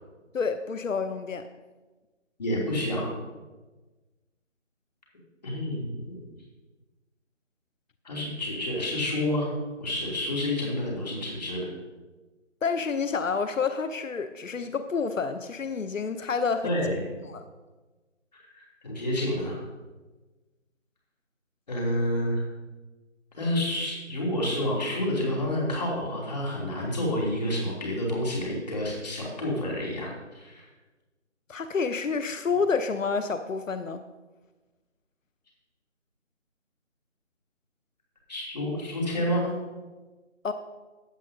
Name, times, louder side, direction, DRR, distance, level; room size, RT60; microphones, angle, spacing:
voice 1, 0.3-1.5 12.6-16.8 17.3-17.4 31.5-34.0 40.4-40.5, left 5 dB, 85° left, 10 dB, 0.8 m, -29 dB
voice 2, 2.4-3.1 5.4-6.2 8.0-9.5 9.8-11.7 16.6-17.0 18.3-19.6 21.7-22.4 23.4-30.7 38.3-39.5, left 1 dB, 35° left, -3 dB, 2.9 m, -29 dB
15.5 x 8.8 x 2.7 m, 1.2 s
figure-of-eight pair, 170°, 38 cm